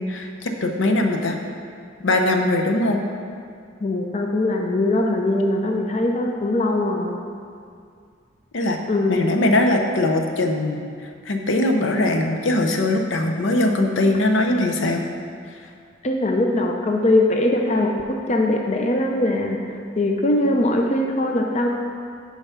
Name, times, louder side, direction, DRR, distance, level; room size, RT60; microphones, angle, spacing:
voice 1, 0.0-1.4 2.0-3.0 8.5-8.8 9.1-15.0, left 1 dB, 80° left, 4 dB, 0.7 m, -21 dB
voice 2, 3.8-7.2 8.9-9.5 16.0-21.7, left 1 dB, 35° left, 2 dB, 0.5 m, -21 dB
7.1 x 4.8 x 5.6 m, 2.3 s
head